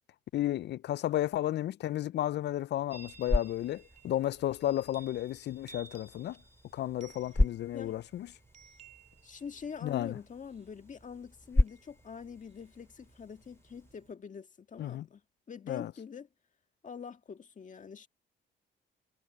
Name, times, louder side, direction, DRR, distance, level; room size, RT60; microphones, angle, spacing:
voice 1, 0.3-6.4 6.7-8.3 9.8-10.2 14.8-15.1 15.7-15.9, left 13 dB, 60° left, 0.4 m, -33 dB
sound 1, 2.9-14.0, left 2 dB, 10° left, 1.3 m, -36 dB
Chime, 2.9-14.1, right 3 dB, 35° right, 2.5 m, -57 dB
voice 2, 9.2-15.2 15.5-16.3 16.8-18.1, left 6 dB, 40° left, 1.8 m, -45 dB
cardioid pair, 90°, 20 cm